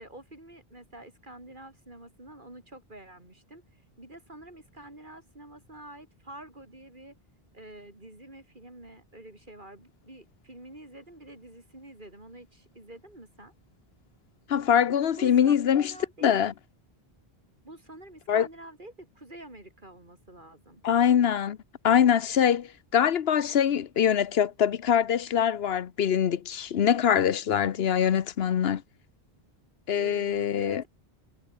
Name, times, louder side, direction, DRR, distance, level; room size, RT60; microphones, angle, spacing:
voice 1, 0.0-7.2 7.5-13.5 15.2-15.5 15.8-16.5 17.6-20.8 29.9-30.9, right 1 dB, 55° right, 5.5 m, -47 dB
voice 2, 14.5-15.9 16.2-16.5 18.3-18.5 20.8-21.6 21.8-28.8 29.9-30.8, left 8 dB, 75° left, 1.0 m, -23 dB
omnidirectional pair, 1.0 m